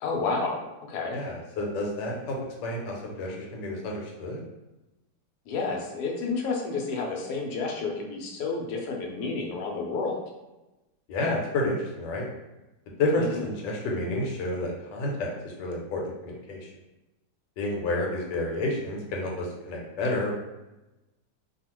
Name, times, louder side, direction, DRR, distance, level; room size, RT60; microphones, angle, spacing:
voice 1, 0.0-0.6 0.9-1.2 5.5-10.2 13.2-13.5, left 4 dB, 70° left, 0 dB, 1.1 m, -30 dB
voice 2, 1.1-2.4 2.6-4.4 11.1-12.3 13.0-16.7 17.6-20.3, left 2 dB, 90° left, -1 dB, 1.3 m, -30 dB
2.7 x 2.4 x 2.9 m, 1.0 s
omnidirectional pair, 1.9 m